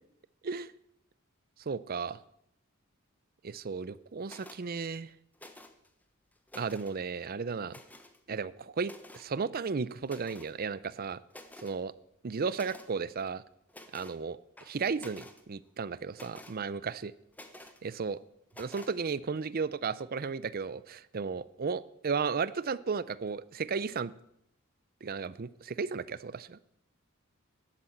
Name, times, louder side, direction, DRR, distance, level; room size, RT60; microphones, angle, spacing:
voice 1, 1.7-2.2 3.4-5.1 6.6-7.8 8.3-11.2 11.6-11.9 12.2-13.4 13.9-14.4 14.7-17.1 17.8-18.2 18.6-24.1 25.0-26.6, right 5 dB, 45° right, 18 dB, 0.5 m, -34 dB
sound 1, 4.2-4.6 5.3-5.9 6.3-7.0 7.7-8.2 8.8-9.3 10.0-10.5 10.9-11.0 11.3-11.8 12.5-12.9 13.7-14.2 14.6-15.4 16.1-16.6 17.3-17.8 18.5-19.0, left 1 dB, 10° left, 1.0 m, -50 dB
11.5 x 8.4 x 7.8 m, 0.76 s
head